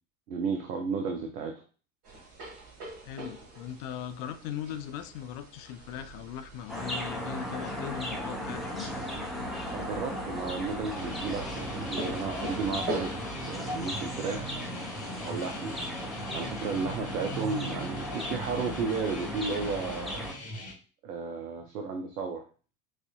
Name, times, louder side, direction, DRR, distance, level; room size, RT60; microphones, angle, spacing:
voice 1, 0.3-1.6 9.7-13.2 13.5-14.5 15.2-15.8 16.3-20.3 21.0-22.4, right 5 dB, 70° right, 3 dB, 0.7 m, -33 dB
sound 1, 2.0-13.2, right 2 dB, 45° right, 2.1 m, -43 dB
voice 2, 3.1-8.9 16.9-17.0, left 10 dB, 35° left, 10 dB, 0.4 m, -39 dB
sound 2, 6.7-20.3, equal, ahead, 0.7 m, -36 dB
sound 3, 11.0-20.7, left 2 dB, 15° left, 1.2 m, -42 dB
6.2 x 2.5 x 2.3 m, 0.37 s
figure-of-eight pair, 75°, 48 cm